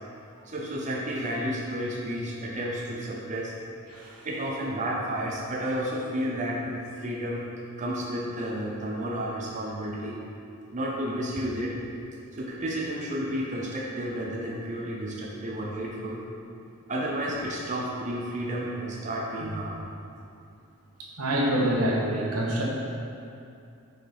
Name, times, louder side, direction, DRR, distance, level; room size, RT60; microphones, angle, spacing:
voice 1, 0.4-3.5 4.2-10.2 10.7-11.8 12.3-16.2 16.9-19.8, equal, 35° right, -3 dB, 0.7 m, -31 dB
voice 2, 21.0-22.6, right 1 dB, 80° right, -2 dB, 1.2 m, -26 dB
6.3 x 4.8 x 4.9 m, 2.6 s
head